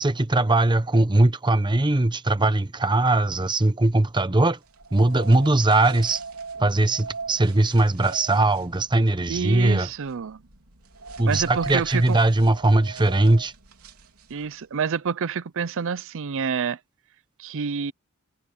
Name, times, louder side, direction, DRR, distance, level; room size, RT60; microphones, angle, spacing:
voice 1, 0.0-4.6 4.9-6.2 6.6-9.9 11.2-13.5, right 2 dB, 20° right, 0.8 m, -20 dB
sound 1, 4.6-14.6, right 4 dB, 75° right, 3.7 m, -41 dB
voice 2, 9.3-10.4 11.2-12.2 14.3-16.8 17.4-17.9, right 6 dB, 60° right, 0.5 m, -28 dB
head